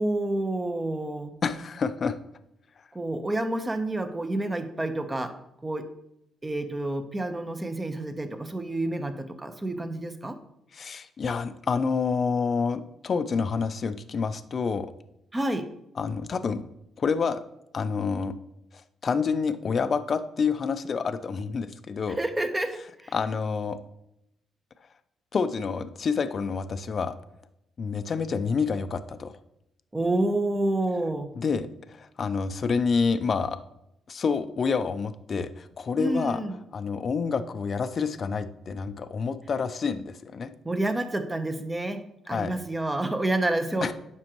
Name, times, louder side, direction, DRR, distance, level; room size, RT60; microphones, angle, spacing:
voice 1, 0.0-1.3 2.9-5.4 5.6-5.9 6.4-10.4 15.3-15.7 22.2-23.1 29.9-31.3 36.0-36.5 40.6-43.9, right 1 dB, 15° right, 8 dB, 0.9 m, -29 dB
voice 2, 1.4-2.2 10.7-14.9 16.0-16.7 17.0-17.4 17.7-18.3 18.7-22.2 23.1-23.8 25.3-27.1 27.8-29.4 31.4-33.6 34.1-36.4 36.7-40.5 42.3-42.6 43.8-43.9, left 5 dB, 45° left, 11 dB, 0.5 m, -28 dB
9.5 x 6.1 x 3.0 m, 0.81 s
cardioid pair, 90°, 0 cm